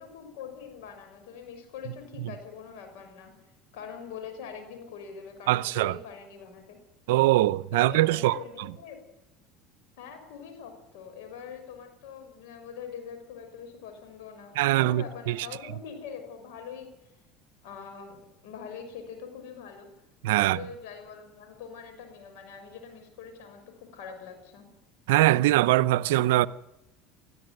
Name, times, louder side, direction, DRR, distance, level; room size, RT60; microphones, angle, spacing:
voice 1, 0.0-3.3 3.7-6.8 7.7-9.0 10.0-16.9 17.6-19.9 20.4-24.7, left 7 dB, 75° left, 6.4 m, -43 dB
voice 2, 5.5-6.0 7.1-8.7 14.6-15.5 20.2-20.6 25.1-26.5, right 16 dB, 80° right, 0.6 m, -22 dB
20.0 x 13.5 x 9.3 m
supercardioid pair, 95°, 0 cm